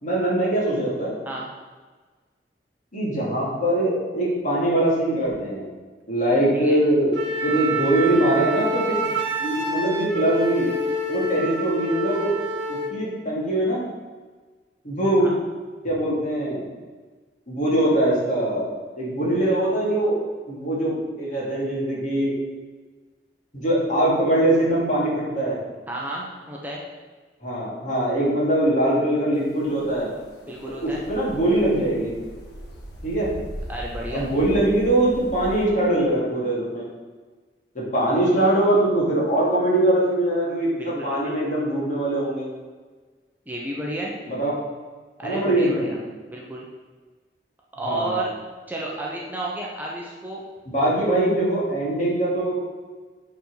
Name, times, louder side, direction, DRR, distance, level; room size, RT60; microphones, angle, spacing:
voice 1, 0.0-1.1 2.9-5.7 6.1-7.1 7.4-9.0 9.4-10.7 11.1-12.3 12.7-13.8 14.8-15.3 15.8-16.6 17.5-18.7 19.0-20.2 20.5-22.3 23.5-25.6 27.4-30.1 30.8-32.1 33.0-33.3 34.1-36.9 37.7-42.5 44.3-44.6 45.2-45.9 47.8-48.1 50.7-52.6, right 1 dB, 45° left, -6 dB, 2.8 m, -22 dB
Wind instrument woodwind instrument, 7.1-13.0, right 1 dB, 80° right, 1.2 m, -27 dB
voice 2, 25.9-26.8 30.4-31.0 33.7-34.3 40.8-41.4 43.5-44.1 45.2-46.0 46.3-46.6 47.8-48.3 48.7-50.4, right 2 dB, 10° right, -4 dB, 0.9 m, -32 dB
sound 1, 29.3-35.6, equal, 70° left, 1.5 m, -39 dB
8.3 x 4.4 x 5.7 m, 1.4 s
head